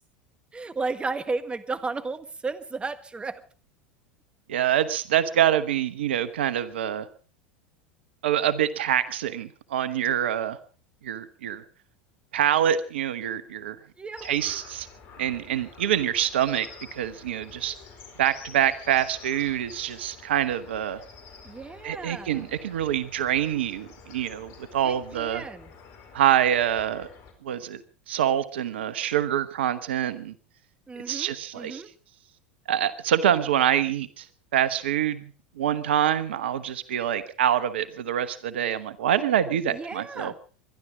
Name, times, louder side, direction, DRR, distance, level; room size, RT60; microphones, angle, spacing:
voice 1, 0.5-3.4 14.0-14.3 21.4-22.5 24.8-25.7 30.9-31.9 39.6-40.3, right 3 dB, 15° right, 12 dB, 1.6 m, -34 dB
voice 2, 4.5-7.1 8.2-10.6 11.0-11.6 12.3-13.8 14.2-14.9 15.2-17.8 18.2-21.0 21.8-25.5 26.1-27.1 27.4-27.8 28.1-30.3 31.1-31.8 32.7-34.3 34.5-35.3 35.6-40.3, right 10 dB, 75° right, 15 dB, 1.1 m, -25 dB
sound 1, 14.2-27.3, left 5 dB, 50° left, 4.6 m, -48 dB
24.0 x 11.5 x 5.1 m, 0.39 s
hypercardioid pair, 85°, 6 cm